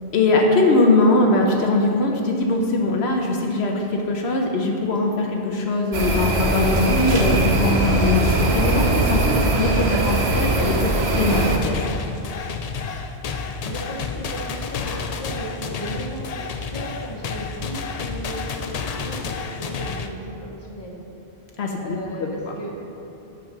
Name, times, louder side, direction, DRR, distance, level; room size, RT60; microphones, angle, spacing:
voice 1, 0.1-11.8 21.6-22.5, left 2 dB, 75° left, 1 dB, 1.0 m, -21 dB
sound 1, 5.9-11.6, right 2 dB, 75° right, 1.2 m, -20 dB
sound 2, 11.3-20.1, left 5 dB, 55° left, 0.4 m, -30 dB
voice 2, 13.6-21.0 21.8-22.7, right 1 dB, 25° left, -3 dB, 1.2 m, -35 dB
8.2 x 5.2 x 6.0 m, 2.8 s
omnidirectional pair, 1.1 m